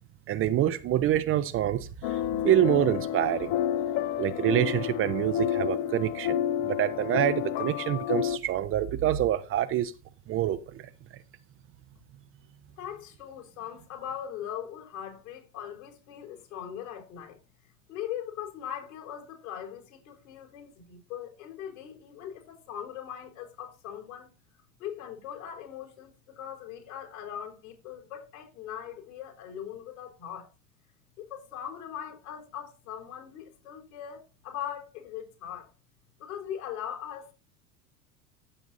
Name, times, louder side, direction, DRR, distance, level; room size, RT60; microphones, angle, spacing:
voice 1, 0.3-3.5 4.2-9.9 10.3-10.9, right 11 dB, 30° right, 0.7 m, -26 dB
sound 1, 2.0-8.4, left 11 dB, 40° left, 0.7 m, -30 dB
voice 2, 12.8-17.4 17.9-24.3 24.8-30.5 31.2-35.7 36.2-37.3, left 9 dB, 65° left, 4.3 m, -40 dB
15.5 x 7.1 x 2.6 m
figure-of-eight pair, 80°, 44 cm